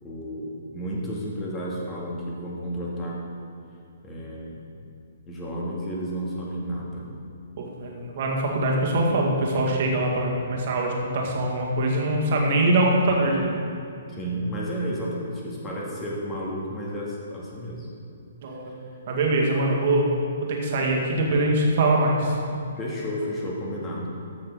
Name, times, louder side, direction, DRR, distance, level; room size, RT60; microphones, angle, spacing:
voice 1, 0.0-3.2 4.0-4.6 5.3-7.0 14.1-17.9 18.6-18.7 22.8-24.1, equal, 15° left, -4 dB, 2.1 m, -32 dB
voice 2, 7.6-13.6 18.4-18.7 19.1-20.1 20.5-22.4, right 1 dB, 45° right, -1 dB, 1.9 m, -23 dB
13.5 x 6.3 x 3.8 m, 2.6 s
figure-of-eight pair, 125°, 0 cm